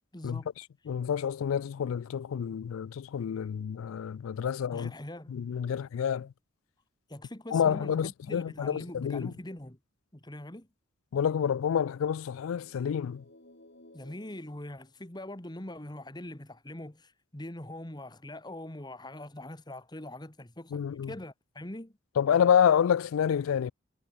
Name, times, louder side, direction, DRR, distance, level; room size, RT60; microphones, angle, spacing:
voice 1, 0.1-0.5 4.7-5.4 7.1-9.8 10.1-10.7 13.9-22.0, left 1 dB, 20° left, 1.9 m, -42 dB
voice 2, 0.9-4.9 5.3-6.3 7.5-9.3 11.1-13.2 20.7-21.1 22.2-23.7, left 8 dB, 85° left, 0.3 m, -28 dB
sound 1, 11.7-15.5, left 1 dB, 55° left, 5.1 m, -58 dB
head